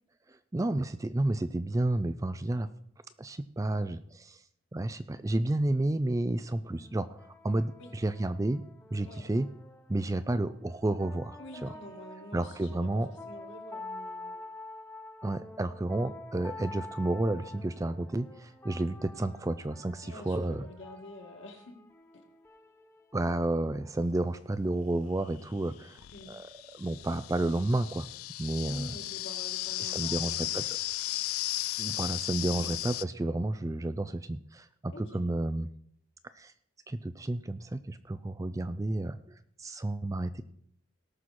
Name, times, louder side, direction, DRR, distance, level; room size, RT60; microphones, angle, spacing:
voice 1, 0.3-2.7 3.2-4.4 4.7-7.1 7.4-8.6 8.9-9.5 9.9-11.7 12.3-13.1 15.2-20.6 23.1-26.0 26.3-28.1 28.4-28.9 29.8-30.6 31.8-35.7 36.3-36.5 36.9-40.4, right 1 dB, 15° right, 12 dB, 0.3 m, -31 dB
sound 1, 6.6-24.1, left 2 dB, 10° left, 0.9 m, -48 dB
voice 2, 11.4-14.4 20.0-21.8 26.1-26.3 28.6-30.6 32.6-32.7 34.9-35.2, left 2 dB, 60° left, 2 dB, 2.1 m, -47 dB
sound 2, 24.6-24.7 25.6-33.0, left 16 dB, 85° left, 0.4 m, -35 dB
18.5 x 6.2 x 4.2 m, 0.66 s
head